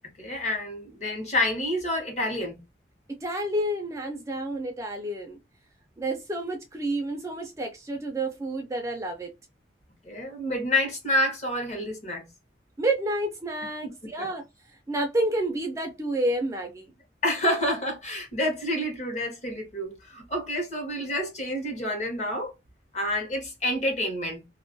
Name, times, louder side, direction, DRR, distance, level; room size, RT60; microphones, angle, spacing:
voice 1, 0.2-2.6 10.0-12.3 14.2-14.3 17.2-22.5 22.9-24.5, left 1 dB, 40° left, 0.8 m, -28 dB
voice 2, 3.1-5.4 6.0-9.3 12.8-14.4 14.9-16.9, right 1 dB, 15° right, 0.4 m, -29 dB
2.3 x 2.2 x 2.5 m
head